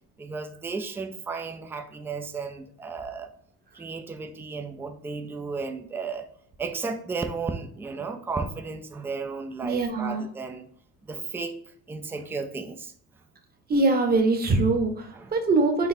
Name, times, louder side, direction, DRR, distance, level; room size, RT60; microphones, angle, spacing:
voice 1, 0.2-3.3 3.7-6.3 6.6-10.6 11.0-11.6 11.9-12.9 15.1-15.3, right 4 dB, 5° right, 6 dB, 0.3 m, -34 dB
voice 2, 9.6-10.2 13.7-15.9, right 3 dB, 25° right, 5 dB, 0.8 m, -23 dB
4.0 x 4.0 x 2.7 m, 0.65 s
supercardioid pair, 105°, 37 cm